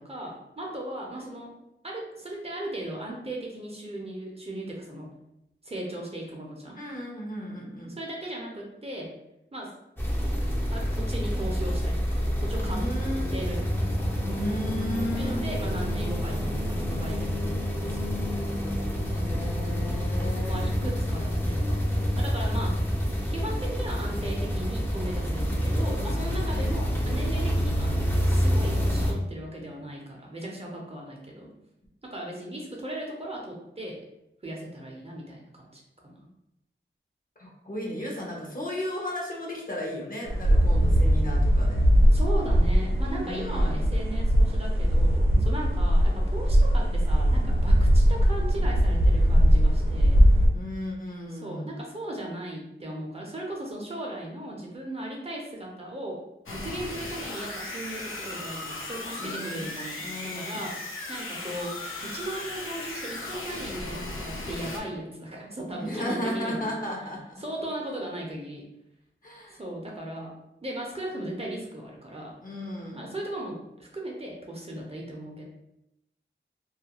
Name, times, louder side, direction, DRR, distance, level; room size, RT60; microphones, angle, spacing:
voice 1, 0.0-1.5 1.8-5.1 5.6-6.8 8.0-9.1 9.5-9.7 10.7-12.8 13.3-14.1 15.1-19.3 20.2-22.8 23.3-31.5 32.0-34.0 34.4-36.2 42.1-50.2 51.3-66.7 67.4-68.7 69.5-70.3 70.6-72.3 72.9-75.4, right 1 dB, 30° right, -1 dB, 0.6 m, -37 dB
voice 2, 6.7-8.0 12.6-13.3 14.3-15.4 19.1-20.8 37.4-41.8 43.2-43.9 50.5-51.8 59.2-59.7 60.0-60.6 65.8-67.4 69.2-69.6 72.4-73.1, equal, 45° left, -2 dB, 0.7 m, -35 dB
sound 1, 10.0-29.1, equal, 10° left, 0.5 m, -27 dB
sound 2, 40.3-50.5, equal, 90° right, 0.6 m, -21 dB
sound 3, 56.5-64.8, left 2 dB, 90° left, 0.5 m, -37 dB
2.3 x 2.2 x 2.9 m, 0.86 s
wide cardioid pair, 60°, 20 cm